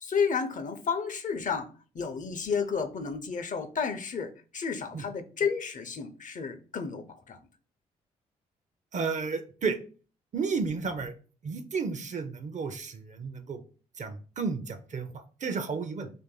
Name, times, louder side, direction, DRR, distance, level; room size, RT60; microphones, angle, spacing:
voice 1, 0.0-7.4, left 6 dB, 45° left, 0.6 m, -32 dB
voice 2, 8.9-9.8 10.3-11.1 11.4-13.6 14.0-16.1, right 5 dB, 40° right, 0.6 m, -32 dB
2.6 x 2.6 x 3.7 m
hypercardioid pair, 45°, 18 cm